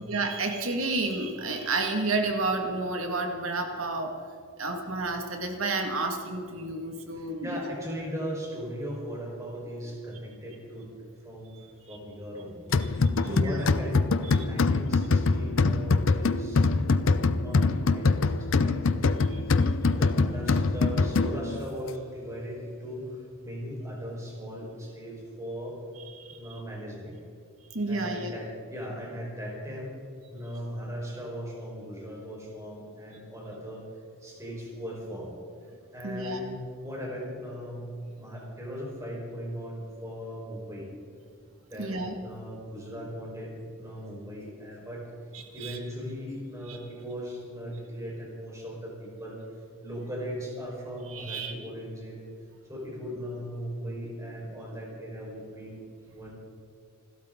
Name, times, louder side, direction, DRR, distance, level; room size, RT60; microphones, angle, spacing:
voice 1, 0.1-4.1 4.6-7.6 13.2-13.6 14.2-14.4 19.9-20.0 26.2-26.4 27.7-28.3 36.0-36.4 41.8-42.1 45.3-45.8 51.1-51.5, right 3 dB, 75° right, 3 dB, 1.9 m, -30 dB
voice 2, 7.1-10.9 11.2-11.5 11.9-12.7 12.9-25.8 26.3-27.2 27.9-30.0 30.3-33.8 34.2-35.3 35.9-40.9 41.7-45.1 45.5-49.4 49.8-52.2 52.7-55.8 56.1-56.3, equal, 15° right, -3 dB, 4.6 m, -38 dB
sound 1, 12.7-21.6, left 3 dB, 65° left, 0.6 m, -24 dB
28.0 x 13.0 x 3.8 m, 2.3 s
head